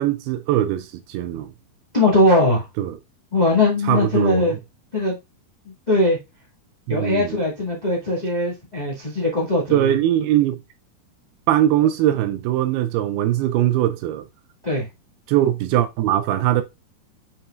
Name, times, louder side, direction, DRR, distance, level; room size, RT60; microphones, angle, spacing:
voice 1, 0.0-1.5 2.8-3.0 3.9-4.6 6.9-7.4 9.7-10.6 11.5-14.3 15.3-16.6, right 12 dB, 80° right, 2.5 m, -21 dB
voice 2, 1.9-2.7 3.3-4.5 4.9-5.1 5.9-6.2 6.9-9.9 14.6-14.8, left 2 dB, 25° left, 0.8 m, -20 dB
7.3 x 5.7 x 2.4 m
omnidirectional pair, 4.6 m